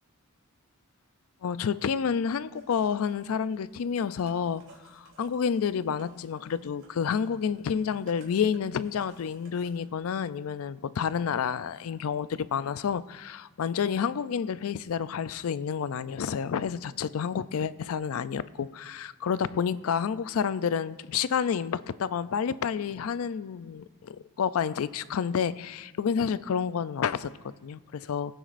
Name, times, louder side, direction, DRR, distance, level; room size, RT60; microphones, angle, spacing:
voice 1, 1.4-28.3, left 7 dB, 70° left, 0.4 m, -29 dB
sound 1, 2.6-9.8, right 3 dB, 80° right, 3.1 m, -58 dB
21.0 x 9.2 x 2.5 m
head